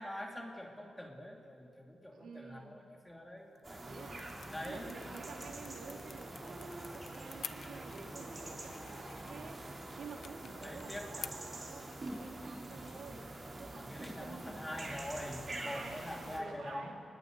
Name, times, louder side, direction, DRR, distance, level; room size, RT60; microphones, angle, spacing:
voice 1, 0.0-3.8 4.5-4.9 10.6-11.5 13.7-17.0, left 1 dB, 10° left, 0 dB, 2.7 m, -45 dB
voice 2, 2.1-2.8 3.8-4.3 4.6-9.6 10.0-13.3 13.6-14.9 15.6-17.0, right 5 dB, 80° right, 1 dB, 3.4 m, -51 dB
sound 1, 3.4-14.9, left 6 dB, 55° left, 0.8 m, -54 dB
sound 2, 3.6-16.4, right 2 dB, 25° right, 3.7 m, -45 dB
28.0 x 21.0 x 8.1 m, 2.3 s
wide cardioid pair, 170°, 0 cm